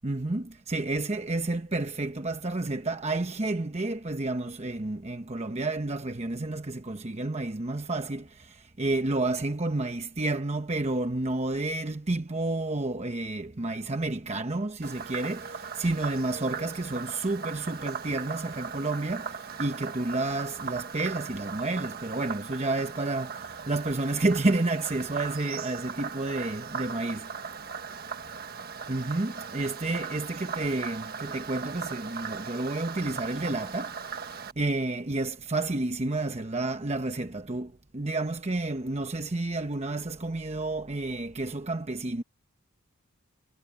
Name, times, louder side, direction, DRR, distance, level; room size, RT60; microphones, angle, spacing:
voice 1, 0.0-8.3 8.8-23.4 23.7-27.3 28.9-33.9 34.6-37.7 37.9-42.2, right 2 dB, 30° right, 0.9 m, -30 dB
Frog, 14.8-34.5, right 6 dB, 45° right, 1.5 m, -38 dB
head